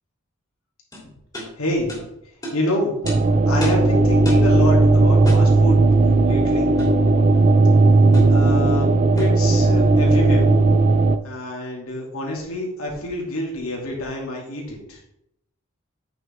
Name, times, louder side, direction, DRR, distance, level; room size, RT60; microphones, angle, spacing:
Metal Ammo Box, 0.9-1.0 1.3-1.5 1.9-2.0 2.4-2.6 3.1-3.2 3.6-3.8 4.2-4.5 5.2-5.5 6.8-7.0 8.1-8.4 9.2-9.4, equal, 15° left, 3.0 m, -29 dB
voice 1, 1.6-2.1 2.5-3.0 3.5-5.8 6.2-6.7 8.3-10.5 11.2-15.0, left 1 dB, 85° left, -2 dB, 2.7 m, -27 dB
sound 1, 3.0-11.2, right 2 dB, 35° right, 0.4 m, -16 dB
9.0 x 6.3 x 3.5 m, 0.79 s
head